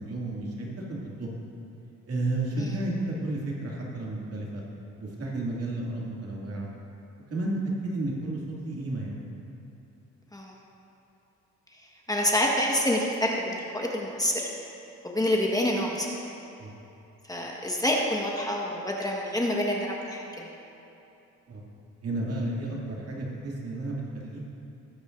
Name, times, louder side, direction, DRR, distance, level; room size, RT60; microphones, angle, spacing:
voice 1, 0.0-1.4 2.1-4.6 5.0-6.7 7.3-9.2 16.6-16.7 21.5-21.6 22.0-24.5, right 2 dB, 50° right, -3 dB, 2.5 m, -32 dB
voice 2, 12.1-14.5 15.0-16.1 17.3-20.5, left 1 dB, 10° left, -2 dB, 1.4 m, -27 dB
20.5 x 8.8 x 2.6 m, 2.9 s
cardioid pair, 90°, 30 cm